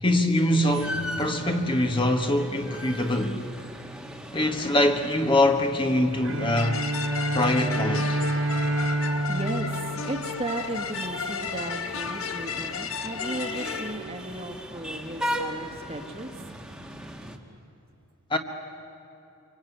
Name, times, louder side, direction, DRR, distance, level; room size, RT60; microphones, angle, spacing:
voice 1, 0.0-3.4 4.3-6.8 7.3-8.2 18.3-18.4, left 1 dB, 25° left, 1.3 m, -23 dB
sound 1, 0.7-17.4, equal, 5° right, 1.5 m, -39 dB
Bowed string instrument, 6.2-11.0, right 1 dB, 75° right, 2.3 m, -28 dB
sound 2, 6.5-13.9, left 6 dB, 75° left, 1.4 m, -34 dB
voice 2, 9.3-16.3, right 1 dB, 30° right, 1.7 m, -35 dB
26.0 x 24.0 x 9.3 m
head